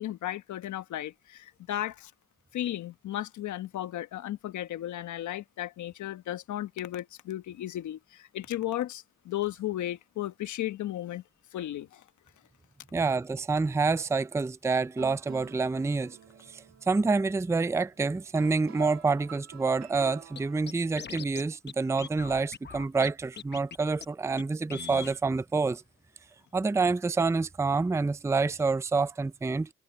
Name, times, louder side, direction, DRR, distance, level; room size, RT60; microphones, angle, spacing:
voice 1, 0.0-2.1 2.5-11.2 11.5-12.0, left 13 dB, 70° left, 1.2 m, -35 dB
voice 2, 12.9-16.2 16.5-25.8 26.5-29.7, right 4 dB, 10° right, 0.5 m, -27 dB
sound 1, 14.7-20.7, right 9 dB, 65° right, 1.6 m, -48 dB
Scratching (performance technique), 20.4-20.5 20.7-21.4 21.7-21.8 22.0-23.1 23.4-23.8 24.0-24.1 24.4-24.5 24.7-25.2, left 7 dB, 35° left, 1.0 m, -40 dB
cardioid pair, 90°, 30 cm